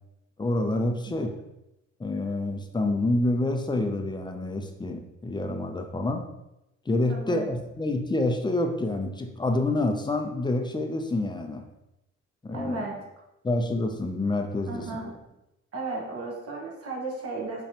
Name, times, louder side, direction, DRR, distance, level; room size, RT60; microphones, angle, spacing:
voice 1, 0.4-1.4 2.0-6.3 6.9-11.6 12.4-12.9 13.4-14.9, left 2 dB, 15° left, 4 dB, 0.6 m, -27 dB
voice 2, 7.1-7.5 12.5-12.9 14.7-15.1 15.7-17.6, right 3 dB, 50° right, -2 dB, 1.4 m, -34 dB
5.5 x 3.1 x 2.9 m, 0.90 s
cardioid pair, 90°, 30 cm